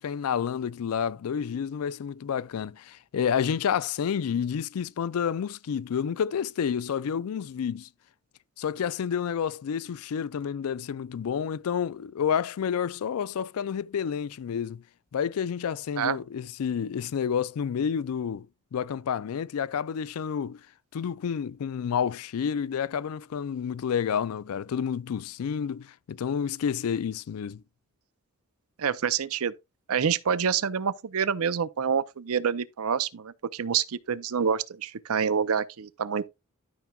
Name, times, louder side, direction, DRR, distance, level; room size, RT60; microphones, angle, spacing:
voice 1, 0.0-7.9 8.6-14.8 15.1-18.5 18.7-20.6 20.9-27.6, left 7 dB, 75° left, 0.4 m, -29 dB
voice 2, 28.8-29.5 29.9-36.3, right 7 dB, 75° right, 0.5 m, -27 dB
12.5 x 5.9 x 2.3 m
head